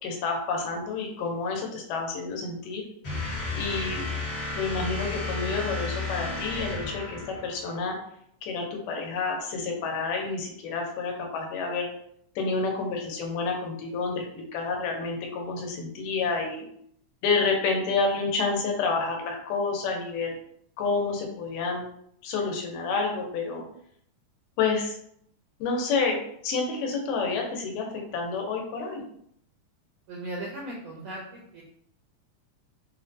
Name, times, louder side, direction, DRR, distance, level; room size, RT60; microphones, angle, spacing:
voice 1, 0.0-2.8 3.5-4.1 4.6-8.0 8.4-11.9 12.4-16.6 17.2-20.3 20.8-21.8 22.2-23.6 24.6-25.0 25.6-27.9 28.1-29.0, left 4 dB, 90° left, 1 dB, 2.4 m, -29 dB
sound 1, 3.0-7.7, left 3 dB, 60° left, 0.9 m, -32 dB
voice 2, 30.1-31.6, right 1 dB, 80° right, -4 dB, 1.4 m, -37 dB
6.0 x 2.1 x 2.6 m, 0.69 s
omnidirectional pair, 3.7 m